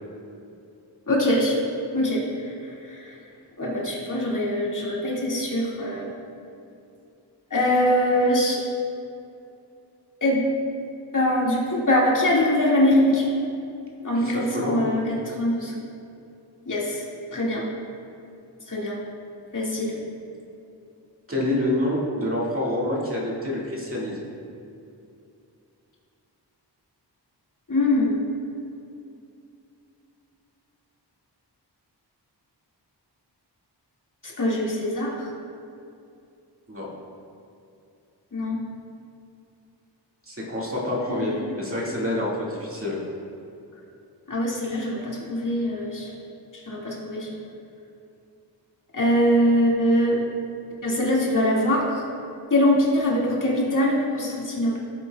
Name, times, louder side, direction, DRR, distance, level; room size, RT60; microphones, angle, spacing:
voice 1, 1.1-1.6 1.9-3.2 3.6-6.1 7.5-8.6 10.2-10.4 11.1-13.3 14.0-15.8 16.7-17.1 17.3-17.7 18.7-19.0 19.5-20.0 27.7-28.2 34.2-35.3 38.3-38.6 41.1-41.5 44.3-46.1 46.5-47.3 48.9-50.2 50.8-52.1 52.5-54.8, left 1 dB, 45° left, -4 dB, 2.0 m, -23 dB
voice 2, 14.2-14.8 21.3-24.2 36.7-36.9 40.3-43.0, left 1 dB, 30° right, -4 dB, 2.0 m, -27 dB
16.0 x 8.1 x 2.3 m, 2.6 s
wide cardioid pair, 95°, 42 cm